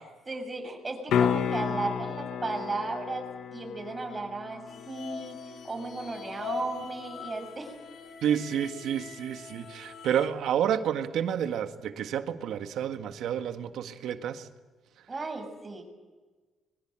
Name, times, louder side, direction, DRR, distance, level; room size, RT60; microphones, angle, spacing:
voice 1, 0.0-3.3 3.5-7.7 15.1-15.8, right 3 dB, 25° right, 5 dB, 6.7 m, -35 dB
sound 1, 1.1-7.1 11.8-11.9, left 8 dB, 75° left, 1.3 m, -33 dB
sound 2, 4.7-10.3, left 5 dB, 60° left, 3.9 m, -42 dB
voice 2, 8.2-14.5, right 9 dB, 75° right, 7 dB, 1.7 m, -30 dB
24.0 x 23.0 x 9.0 m, 1.3 s
cardioid pair, 90°, 0 cm